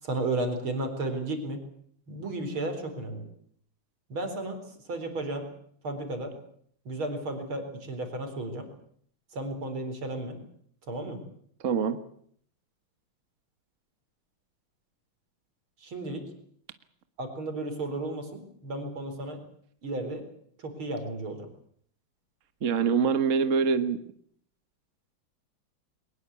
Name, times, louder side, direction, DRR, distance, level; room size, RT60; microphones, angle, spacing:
voice 1, 0.0-1.6 2.1-3.2 4.1-5.5 5.8-6.3 6.8-8.7 9.3-10.4 10.9-11.2 15.8-16.2 17.2-19.4 19.8-20.2 20.6-21.5, right 2 dB, 90° right, 7 dB, 5.1 m, -33 dB
voice 2, 11.6-12.0 22.6-24.0, right 6 dB, 40° right, 11 dB, 1.6 m, -24 dB
22.0 x 20.5 x 8.4 m, 0.64 s
omnidirectional pair, 2.2 m